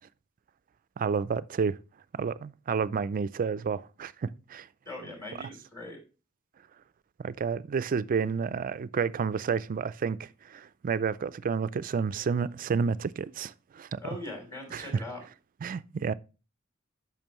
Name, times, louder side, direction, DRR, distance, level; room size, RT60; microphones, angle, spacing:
voice 1, 1.0-1.8 2.1-4.7 7.2-14.0 14.7-15.0 15.6-16.1, right 5 dB, 40° right, 0.3 m, -30 dB
voice 2, 4.8-6.0 14.0-15.2, left 2 dB, 15° left, 3.1 m, -41 dB
8.9 x 6.0 x 3.0 m
head